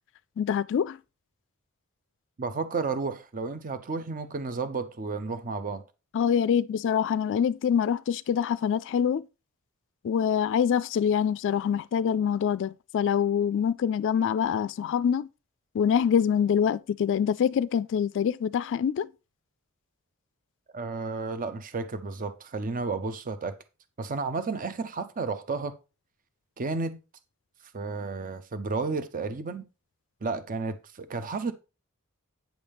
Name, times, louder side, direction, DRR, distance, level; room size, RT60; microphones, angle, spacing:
voice 1, 0.4-1.0 6.1-9.3 10.0-15.3 15.7-19.1, left 8 dB, 55° left, 0.3 m, -25 dB
voice 2, 2.4-5.8 20.7-23.6 24.0-25.7 26.6-27.0 27.7-29.6 30.2-31.5, right 4 dB, 40° right, 0.5 m, -32 dB
8.9 x 7.0 x 3.4 m
head